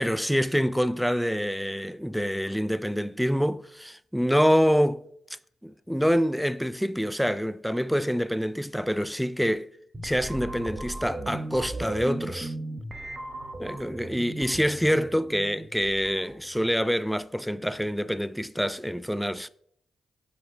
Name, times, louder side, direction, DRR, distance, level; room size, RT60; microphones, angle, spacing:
voice 1, 0.0-5.0 5.6-9.7 10.0-12.5 13.6-19.5, equal, ahead, 0.4 m, -26 dB
sound 1, 9.9-16.8, right 2 dB, 30° right, 1.2 m, -37 dB
7.7 x 5.3 x 3.8 m
hypercardioid pair, 45°, 0 cm